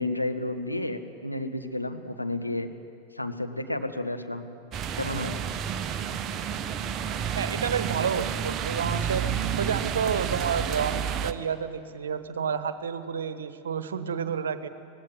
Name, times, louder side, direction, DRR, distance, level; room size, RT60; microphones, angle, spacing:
voice 1, 0.0-2.7 3.1-4.5 5.0-5.4, left 2 dB, 90° left, 6 dB, 1.2 m, -31 dB
sound 1, 4.7-11.3, right 8 dB, 30° right, 0.8 m, -30 dB
voice 2, 7.3-14.7, right 7 dB, 65° right, 12 dB, 1.1 m, -30 dB
19.0 x 16.5 x 9.6 m, 2.5 s
figure-of-eight pair, 90°, 0 cm